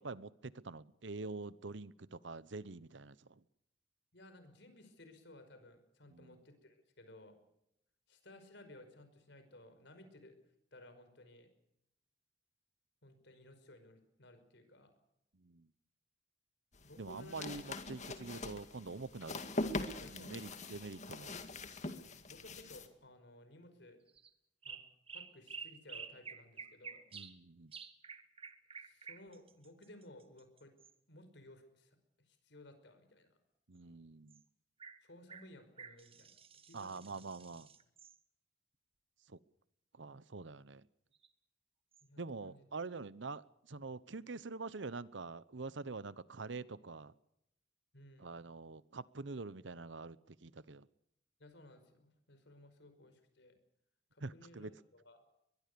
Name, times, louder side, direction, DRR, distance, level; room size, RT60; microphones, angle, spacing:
voice 1, 0.0-3.4 6.1-6.4 15.4-15.7 17.0-19.4 20.0-21.4 22.0-22.1 27.1-27.7 33.7-34.4 36.7-37.7 39.3-39.4 39.9-40.9 42.2-47.1 48.2-50.9 54.2-54.7, right 3 dB, 70° right, 18 dB, 0.9 m, -46 dB
voice 2, 4.1-7.4 8.1-10.4 10.7-11.5 13.0-14.9 16.8-17.6 20.0-20.6 22.3-24.0 24.6-24.8 25.1-27.1 28.8-30.7 31.1-33.4 35.0-37.2 42.0-42.6 47.9-48.3 51.4-53.6 54.1-55.2, left 1 dB, 65° left, 9 dB, 5.3 m, -58 dB
sound 1, 16.7-22.9, left 2 dB, 40° left, 2.2 m, -42 dB
sound 2, 24.1-24.3 24.6-27.4 27.7-30.9 34.3-34.4 34.8-35.0 35.3-38.2 41.1-41.3 41.9-42.0, right 5 dB, 30° right, 1.6 m, -51 dB
22.5 x 22.0 x 6.9 m, 0.81 s
head